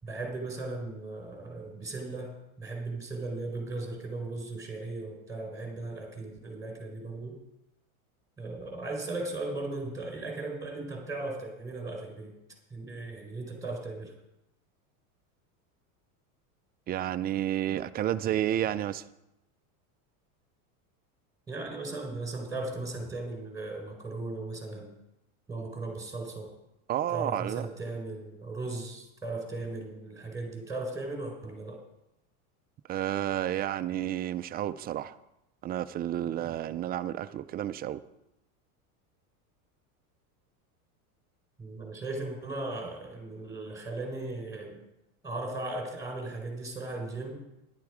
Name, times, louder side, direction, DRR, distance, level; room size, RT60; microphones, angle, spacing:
voice 1, 0.0-2.3 2.6-7.4 8.4-12.3 12.7-14.1 21.5-24.9 25.5-26.5 27.1-31.8 41.6-44.8 45.2-47.4, right 2 dB, 5° right, 2 dB, 4.5 m, -37 dB
voice 2, 16.9-19.1 26.9-27.7 32.9-35.2 35.6-38.0, right 11 dB, 25° right, 12 dB, 0.4 m, -31 dB
14.0 x 11.5 x 4.9 m, 0.89 s
supercardioid pair, 125°, 44 cm